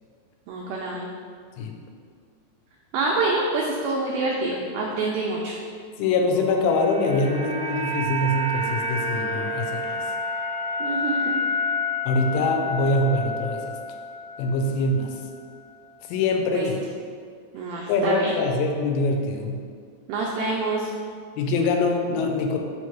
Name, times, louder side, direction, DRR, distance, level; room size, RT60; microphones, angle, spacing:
voice 1, 0.5-1.1 2.9-5.5 10.8-11.4 16.5-16.7 17.5-18.3 20.1-20.9, right 3 dB, 90° right, -2 dB, 2.0 m, -26 dB
voice 2, 6.0-10.0 12.1-13.6 14.4-15.1 16.1-16.8 17.9-19.6 21.4-22.6, left 2 dB, 85° left, 3 dB, 2.8 m, -24 dB
sound 1, 6.4-14.7 14.9-15.1, left 1 dB, 75° right, 2.5 m, -29 dB
6.2 x 3.1 x 5.8 m, 2.1 s
omnidirectional pair, 4.9 m